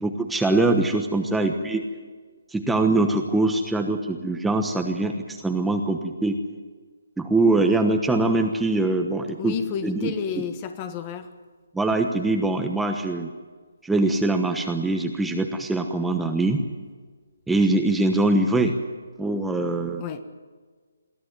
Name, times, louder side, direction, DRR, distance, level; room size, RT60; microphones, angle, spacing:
voice 1, 0.0-1.8 2.5-6.4 7.2-9.6 9.8-10.1 11.7-13.3 13.8-16.6 17.5-18.8 19.2-20.0, right 2 dB, 5° right, 3 dB, 1.1 m, -23 dB
voice 2, 9.4-11.3 20.0-20.2, left 7 dB, 25° left, 10 dB, 1.5 m, -31 dB
23.0 x 14.5 x 9.4 m, 1.5 s
figure-of-eight pair, 150°, 0 cm